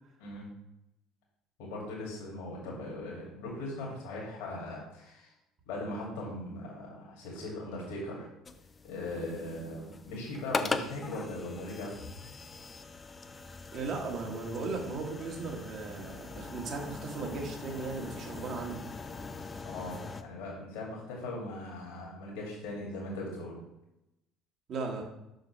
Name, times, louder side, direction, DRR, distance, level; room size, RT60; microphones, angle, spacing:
voice 1, 0.2-0.6 1.6-5.3 5.7-8.3 8.8-11.9 19.6-23.5, left 2 dB, 65° left, -4 dB, 2.2 m, -39 dB
sound 1, 8.5-20.2, left 4 dB, 30° left, 0.6 m, -41 dB
voice 2, 13.7-18.9 24.7-25.0, right 4 dB, 45° right, 1 dB, 1.6 m, -37 dB
6.4 x 6.1 x 3.3 m, 0.89 s
figure-of-eight pair, 60°, 0 cm